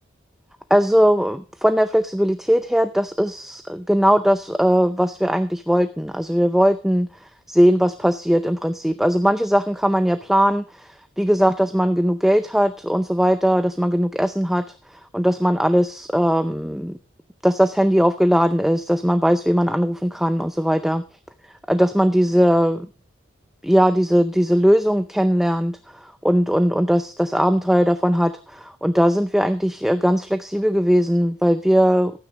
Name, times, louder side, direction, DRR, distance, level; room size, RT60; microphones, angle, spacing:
voice 1, 0.7-7.1 7.5-17.0 17.4-21.0 21.7-22.9 23.6-32.1, equal, ahead, 9 dB, 0.5 m, -19 dB
15.0 x 9.5 x 3.7 m, 0.35 s
head